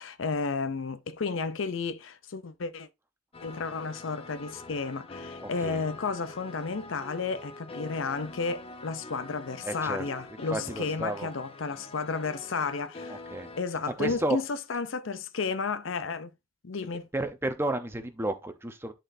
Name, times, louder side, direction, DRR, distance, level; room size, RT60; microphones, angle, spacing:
voice 1, 0.0-2.9 3.4-13.2 13.6-16.3 16.6-17.1, left 4 dB, 85° left, 0.6 m, -32 dB
sound 1, 3.3-13.6, left 2 dB, 30° left, 0.6 m, -45 dB
voice 2, 5.4-5.8 9.6-10.1 10.5-11.3 13.1-13.5 14.0-14.4 17.1-18.9, right 2 dB, 10° right, 0.8 m, -32 dB
11.0 x 4.3 x 2.7 m
head